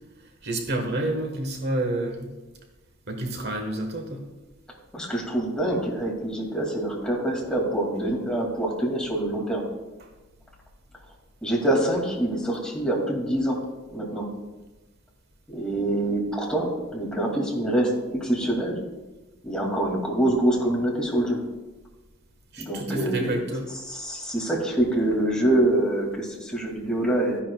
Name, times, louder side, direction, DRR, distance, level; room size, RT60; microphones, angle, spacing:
voice 1, 0.4-2.3 3.1-4.2 10.0-10.1 22.5-23.7, right 1 dB, 55° right, 3 dB, 1.3 m, -29 dB
voice 2, 4.9-9.6 11.4-13.6 13.9-14.3 15.5-18.8 19.4-21.4 22.6-23.4 23.8-27.4, right 1 dB, 5° left, -3 dB, 2.3 m, -25 dB
14.0 x 10.0 x 2.3 m, 1.1 s
head